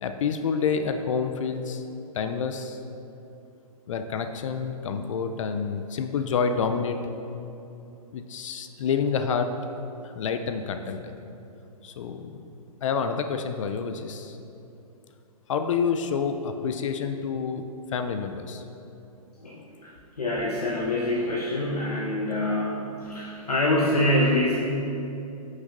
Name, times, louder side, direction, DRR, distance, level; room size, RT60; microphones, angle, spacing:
voice 1, 0.0-1.8 2.1-2.8 3.9-7.0 8.1-9.5 10.0-11.1 11.8-12.4 12.8-14.4 15.5-17.6 17.9-18.6, left 6 dB, 55° left, 7 dB, 0.5 m, -28 dB
voice 2, 19.4-19.9 20.2-24.6, left 1 dB, 85° left, -5 dB, 1.0 m, -25 dB
9.5 x 6.3 x 2.6 m, 2.8 s
hypercardioid pair, 125°, 19 cm